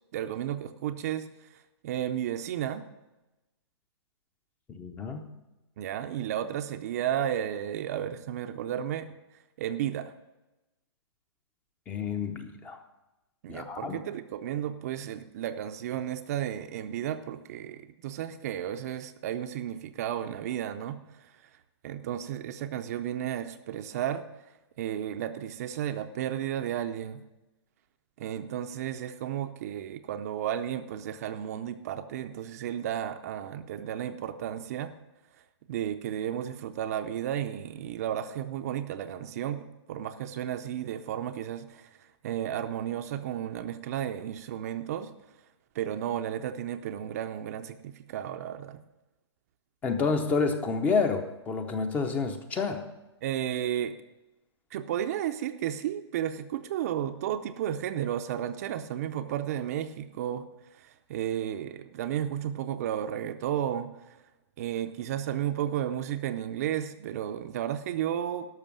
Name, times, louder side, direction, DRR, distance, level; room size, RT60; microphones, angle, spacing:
voice 1, 0.1-1.3 1.8-2.9 5.8-9.1 9.6-10.1 13.4-21.0 21.8-24.2 24.8-27.2 28.2-34.9 35.7-41.9 42.2-45.1 45.7-48.8 53.2-54.0 54.7-60.4 61.1-63.9 64.6-68.5, right 10 dB, 35° right, 8 dB, 0.6 m, -33 dB
voice 2, 4.7-5.3 11.9-12.8 13.5-14.0 49.8-52.8, left 4 dB, 10° left, 7 dB, 0.7 m, -29 dB
12.5 x 6.0 x 7.3 m, 1.0 s
hypercardioid pair, 165°, 14 cm